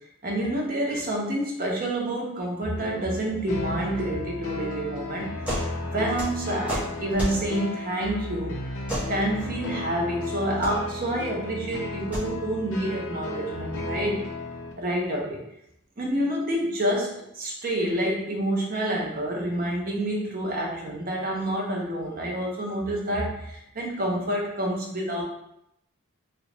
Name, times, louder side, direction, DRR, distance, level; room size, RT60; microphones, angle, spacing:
voice 1, 0.2-8.6 9.1-14.2 14.8-15.4 16.0-25.2, right 1 dB, 40° right, -1 dB, 0.7 m, -28 dB
sound 1, 2.8-14.7, left 2 dB, 85° left, 0.6 m, -34 dB
sound 2, 5.4-5.7 6.0-7.4 8.9-9.1 10.4-10.7 11.9-12.3, equal, 5° right, 0.9 m, -30 dB
3.1 x 2.5 x 3.2 m, 0.78 s
head